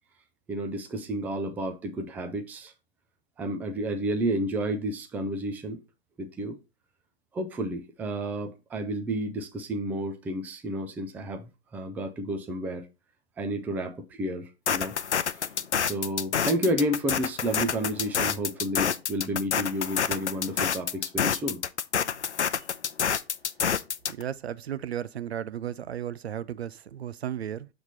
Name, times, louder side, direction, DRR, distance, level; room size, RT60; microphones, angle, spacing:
voice 1, 0.5-2.7 3.4-5.8 6.2-6.6 7.3-11.4 11.7-12.9 13.4-15.4 15.8-21.6, right 1 dB, 5° right, 0.4 m, -31 dB
sound 1, 14.7-24.2, left 7 dB, 80° left, 0.6 m, -27 dB
voice 2, 24.1-27.7, right 10 dB, 65° right, 0.5 m, -34 dB
7.2 x 3.4 x 4.1 m
figure-of-eight pair, 110°, 34 cm